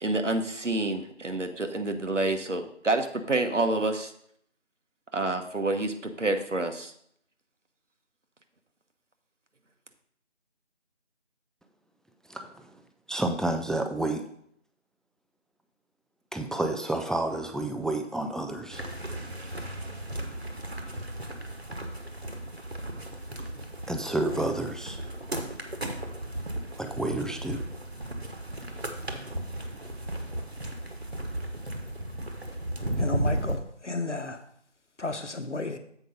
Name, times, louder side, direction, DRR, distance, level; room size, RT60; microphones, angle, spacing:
voice 1, 0.0-4.1 5.1-6.9, right 2 dB, 80° right, 6 dB, 1.1 m, -28 dB
voice 2, 12.3-12.8 13.1-14.2 16.3-18.8 23.9-25.0 26.8-27.6, right 2 dB, ahead, 5 dB, 0.4 m, -30 dB
sound 1, 18.7-33.6, right 1 dB, 60° right, 1.2 m, -35 dB
voice 3, 33.0-34.4 35.0-35.8, left 3 dB, 75° left, 8 dB, 1.0 m, -33 dB
7.7 x 4.9 x 5.1 m, 0.68 s
figure-of-eight pair, 175°, 36 cm